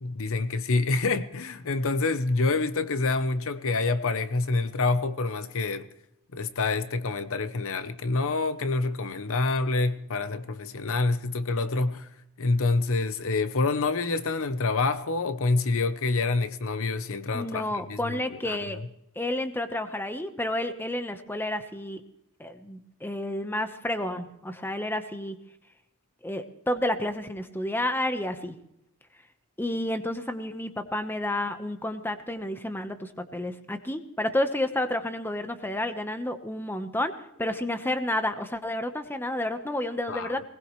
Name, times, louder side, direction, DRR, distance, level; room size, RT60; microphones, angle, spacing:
voice 1, 0.0-5.9 6.3-12.1 12.4-18.6 40.1-40.3, left 3 dB, 65° left, 0.8 m, -27 dB
voice 2, 17.3-18.8 19.2-22.0 22.4-25.4 26.2-28.5 29.6-37.1 37.4-40.4, left 1 dB, 10° left, 1.1 m, -30 dB
20.0 x 19.5 x 3.2 m
head